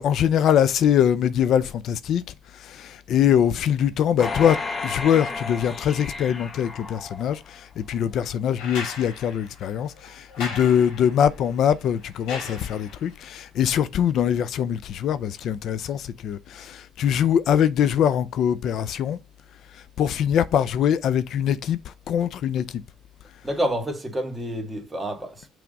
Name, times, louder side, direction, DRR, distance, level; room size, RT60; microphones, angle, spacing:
voice 1, 0.0-2.2 2.5-19.2 19.7-22.8, left 9 dB, 60° left, 0.4 m, -23 dB
sound 1, 4.2-7.6 8.1-8.2, left 3 dB, 25° left, 0.8 m, -33 dB
sound 2, 8.6-13.2 14.8-14.9, left 4 dB, 85° left, 2.8 m, -38 dB
voice 2, 23.4-25.5, right 1 dB, 10° right, 1.8 m, -28 dB
5.9 x 3.5 x 5.1 m
cardioid pair, 120°, 0 cm